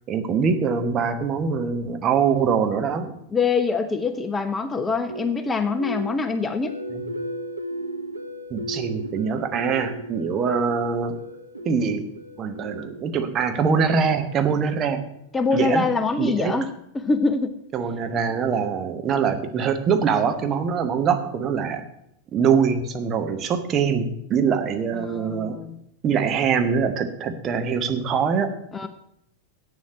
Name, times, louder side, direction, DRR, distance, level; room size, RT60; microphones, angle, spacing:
voice 1, 0.1-3.1 6.9-7.1 8.5-11.2 11.6-12.1 12.4-15.0 15.5-15.9 16.2-16.6 17.7-21.9 22.3-25.6 26.0-28.5, right 6 dB, 30° right, 7 dB, 1.1 m, -23 dB
voice 2, 3.3-6.7 15.3-17.5 24.9-25.8 28.7-28.9, left 4 dB, 15° left, 9 dB, 0.7 m, -24 dB
sound 1, 5.1-15.2, right 1 dB, 80° right, 1.0 m, -36 dB
8.5 x 7.3 x 8.4 m, 0.76 s
figure-of-eight pair, 90°, 0 cm